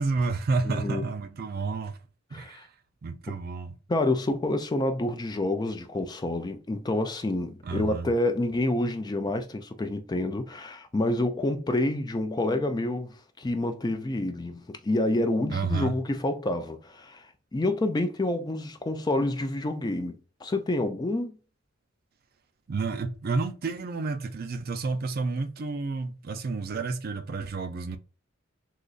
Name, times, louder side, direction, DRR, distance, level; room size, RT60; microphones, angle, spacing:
voice 1, 0.0-2.0 2.3-2.7 3.0-3.8 7.6-8.1 15.5-15.9 22.7-28.0, right 4 dB, 50° right, 0.4 m, -30 dB
voice 2, 0.7-1.0 2.3-2.6 3.9-21.3, left 2 dB, 20° left, 0.4 m, -28 dB
3.8 x 3.0 x 2.3 m
head